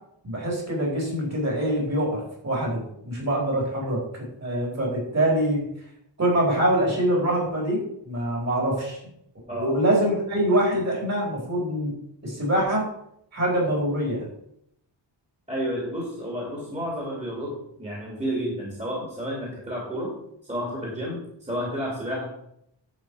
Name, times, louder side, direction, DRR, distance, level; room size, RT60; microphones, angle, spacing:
voice 1, 0.2-4.0 4.4-5.7 6.2-9.0 9.5-11.9 12.2-12.9 13.3-14.2, right 1 dB, 35° right, -2 dB, 4.6 m, -24 dB
voice 2, 9.5-9.8 15.5-20.1 20.4-22.3, equal, 15° right, -3 dB, 2.8 m, -31 dB
10.5 x 8.1 x 4.9 m, 0.75 s
wide cardioid pair, 155°, 43 cm